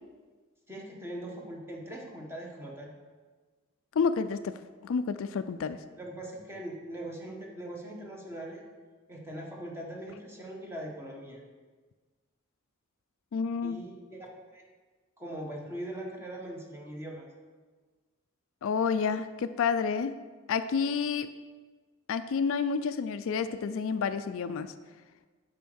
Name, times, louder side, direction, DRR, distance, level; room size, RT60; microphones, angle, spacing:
voice 1, 0.7-2.9 6.0-8.6 9.1-11.4 13.6-14.6 15.2-17.3, right 1 dB, 10° right, -1 dB, 1.3 m, -41 dB
voice 2, 4.0-4.5 4.8-5.8 13.3-13.8 18.6-20.2 20.5-21.3 22.1-24.7, left 5 dB, 65° left, 11 dB, 0.4 m, -29 dB
8.2 x 5.2 x 6.2 m, 1.4 s
head